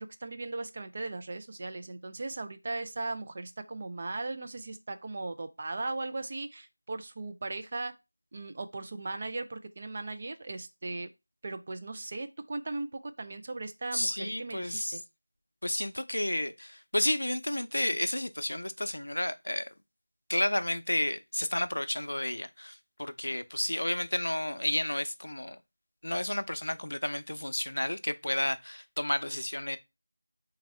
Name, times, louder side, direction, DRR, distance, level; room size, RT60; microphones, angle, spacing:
voice 1, 0.0-7.9 8.3-11.1 11.4-15.0, right 2 dB, 30° right, 0.3 m, -38 dB
voice 2, 13.9-15.0 15.6-19.7 20.3-25.6 26.0-29.8, left 1 dB, 75° left, 0.5 m, -31 dB
3.5 x 3.3 x 3.1 m
figure-of-eight pair, 175°, 0 cm